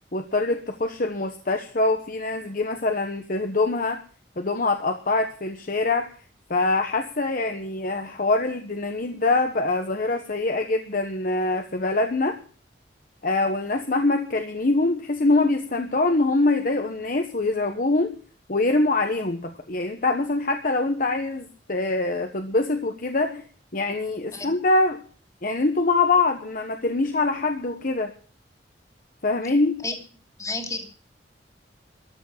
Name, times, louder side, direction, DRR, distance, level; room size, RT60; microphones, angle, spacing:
voice 1, 0.1-4.0 4.4-6.1 6.5-12.4 13.2-18.2 18.5-23.4 23.7-25.0 25.4-28.1 29.2-29.8, left 2 dB, 50° left, 6 dB, 1.3 m, -24 dB
voice 2, 30.4-30.8, left 3 dB, 20° left, 6 dB, 2.7 m, -30 dB
14.0 x 7.5 x 9.9 m, 0.42 s
head